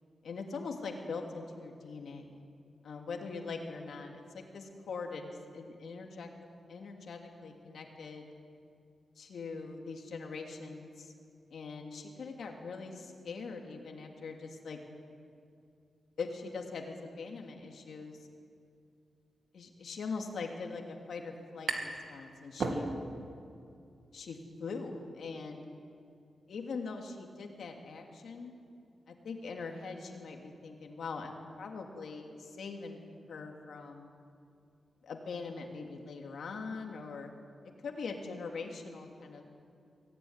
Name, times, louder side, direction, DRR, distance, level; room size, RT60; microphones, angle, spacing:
voice 1, 0.2-2.3 2.8-6.3 6.7-8.3 9.2-11.1 11.5-14.8 16.2-18.3 19.5-22.9 24.1-24.3 24.6-25.7 26.5-28.5 29.1-34.1 35.0-37.3 37.8-39.4, left 4 dB, 70° left, 2 dB, 2.8 m, -42 dB
sound 1, 21.0-22.1 22.4-23.3, right 3 dB, 55° right, 2.5 m, -35 dB
24.0 x 16.0 x 9.8 m, 2.4 s
wide cardioid pair, 180°, 0 cm